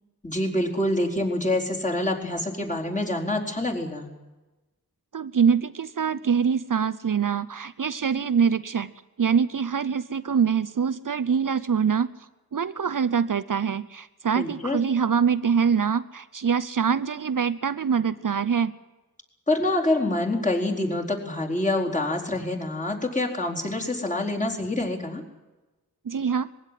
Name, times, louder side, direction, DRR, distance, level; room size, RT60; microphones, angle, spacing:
voice 1, 0.2-4.1 14.3-14.8 19.5-25.2, left 1 dB, 20° left, -1 dB, 4.4 m, -26 dB
voice 2, 5.1-8.9 9.2-12.1 12.5-18.7 26.0-26.5, right 6 dB, 60° right, 14 dB, 0.7 m, -24 dB
21.0 x 16.0 x 10.0 m, 1.1 s
wide cardioid pair, 65°, 37 cm